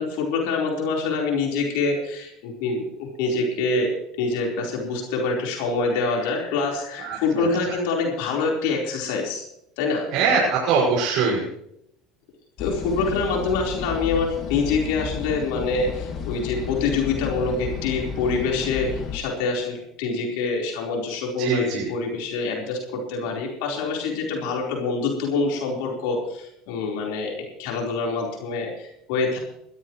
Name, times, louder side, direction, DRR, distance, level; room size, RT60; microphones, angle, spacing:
voice 1, 0.0-9.4 9.8-10.1 12.6-29.4, left 4 dB, 75° left, -1 dB, 4.4 m, -26 dB
voice 2, 7.0-7.5 10.1-11.4 21.4-21.9, right 5 dB, 65° right, -4 dB, 6.2 m, -22 dB
sound 1, 12.6-19.2, left 6 dB, 45° left, 2.4 m, -32 dB
21.0 x 13.5 x 3.2 m, 0.76 s
supercardioid pair, 100°, 0 cm